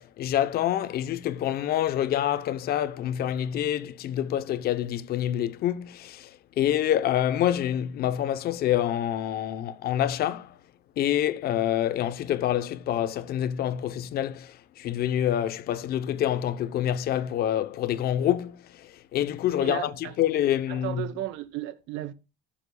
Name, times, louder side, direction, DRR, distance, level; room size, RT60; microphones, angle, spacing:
voice 1, 0.0-10.6 11.0-19.9 20.2-21.1, left 11 dB, 55° left, 0.9 m, -27 dB
voice 2, 19.6-20.1 20.7-22.1, right 14 dB, 75° right, 1.1 m, -34 dB
19.0 x 7.3 x 2.3 m
cardioid pair, 140°, 19 cm